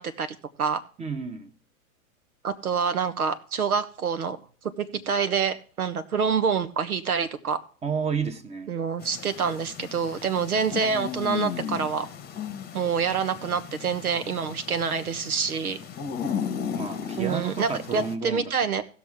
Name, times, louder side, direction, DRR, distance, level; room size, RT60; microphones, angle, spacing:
voice 1, 0.0-0.8 2.4-4.4 4.8-7.6 8.7-12.1 12.7-15.8 17.2-18.8, right 6 dB, 85° right, 1.3 m, -27 dB
voice 2, 1.0-1.5 7.8-8.7 16.7-18.8, right 5 dB, 15° right, 1.1 m, -31 dB
sound 1, 9.0-18.1, left 7 dB, 20° left, 1.0 m, -35 dB
17.0 x 6.3 x 3.6 m
hypercardioid pair, 105°, 43 cm